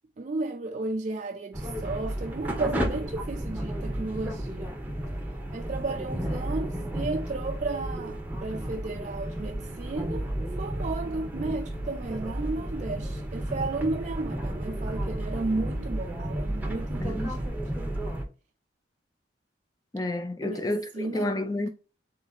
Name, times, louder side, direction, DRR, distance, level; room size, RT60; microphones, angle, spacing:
voice 1, 0.2-4.8 5.5-10.3 10.6-17.5 20.4-21.3, right 3 dB, 40° right, 0.3 m, -33 dB
sound 1, 1.5-18.2, right 1 dB, 10° right, 0.7 m, -32 dB
voice 2, 19.9-21.7, left 1 dB, 20° left, 0.5 m, -30 dB
3.9 x 2.8 x 3.9 m
head